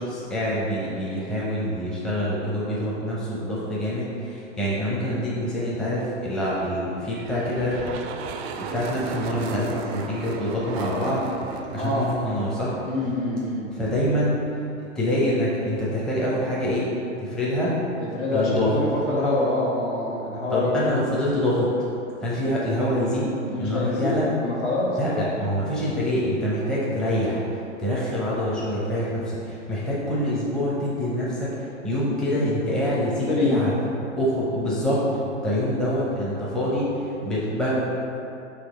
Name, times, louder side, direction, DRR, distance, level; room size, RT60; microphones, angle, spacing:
voice 1, 0.0-8.1 8.5-11.3 11.7-12.8 13.8-14.4 14.9-16.9 17.2-17.8 18.3-18.8 20.5-21.8 22.2-24.3 25.0-33.7 34.2-37.8, equal, ahead, -8 dB, 0.6 m, -25 dB
sound 1, 7.1-13.5, right 5 dB, 60° right, 0.4 m, -35 dB
voice 2, 12.9-13.7 18.0-20.9 23.5-25.2 33.3-33.6, left 2 dB, 65° left, -5 dB, 1.4 m, -25 dB
4.1 x 2.8 x 4.1 m, 2.7 s
hypercardioid pair, 115°, 37 cm